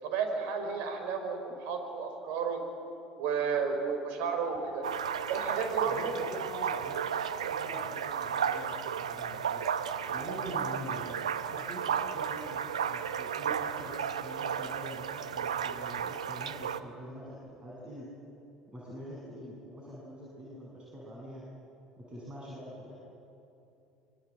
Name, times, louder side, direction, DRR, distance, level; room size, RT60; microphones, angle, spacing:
voice 1, 0.0-2.6 3.2-4.8 5.3-6.1, right 6 dB, 65° right, 5 dB, 5.1 m, -32 dB
sound 1, 4.8-16.8, right 8 dB, 80° right, 0.9 m, -34 dB
voice 2, 5.8-7.0 7.5-9.7 10.1-18.1 18.7-21.5 22.0-22.9, equal, 25° right, -5 dB, 8.0 m, -45 dB
26.0 x 23.0 x 9.0 m, 2.8 s
figure-of-eight pair, 65°, 3 cm